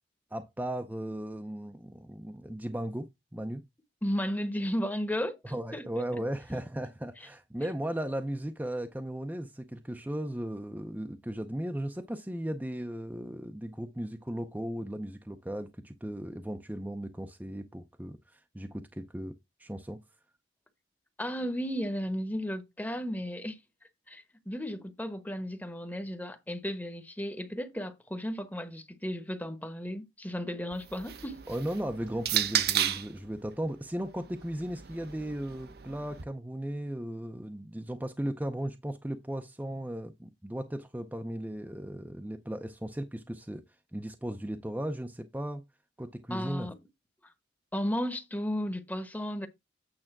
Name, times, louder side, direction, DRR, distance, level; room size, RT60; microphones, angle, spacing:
voice 1, 0.3-3.6 5.4-20.0 31.5-43.6 43.9-45.6 46.0-46.7, right 1 dB, 10° right, 0.6 m, -36 dB
voice 2, 4.0-5.4 5.7-6.0 21.2-23.6 24.1-31.4 46.3-46.8 47.2-47.3 47.7-49.5, equal, 10° left, 1.0 m, -34 dB
sound 1, 30.7-33.2 34.1-36.2, right 10 dB, 60° right, 0.8 m, -33 dB
8.9 x 3.5 x 5.9 m
head